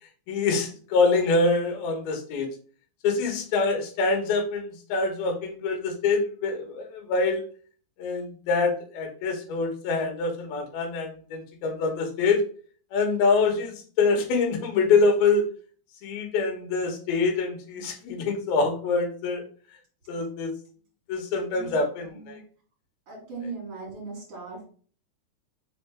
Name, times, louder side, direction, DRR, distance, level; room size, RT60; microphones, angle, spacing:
voice 1, 0.3-2.5 3.0-7.4 8.0-12.4 12.9-15.5 16.0-19.4 20.1-20.5 21.1-22.4, left 4 dB, 65° left, 3 dB, 2.9 m, -25 dB
voice 2, 21.5-22.4 23.1-24.6, right 4 dB, 35° right, -4 dB, 3.7 m, -39 dB
6.5 x 4.3 x 3.4 m, 0.43 s
omnidirectional pair, 5.2 m